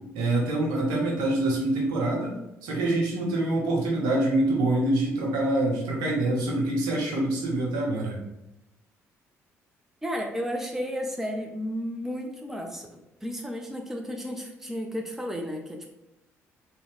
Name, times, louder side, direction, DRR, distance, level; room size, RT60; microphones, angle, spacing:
voice 1, 0.1-2.4 2.6-8.2, right 2 dB, 65° right, -2 dB, 1.2 m, -25 dB
voice 2, 10.0-15.9, equal, 5° right, 2 dB, 0.6 m, -33 dB
3.8 x 2.9 x 3.6 m, 0.88 s
figure-of-eight pair, 50°, 7 cm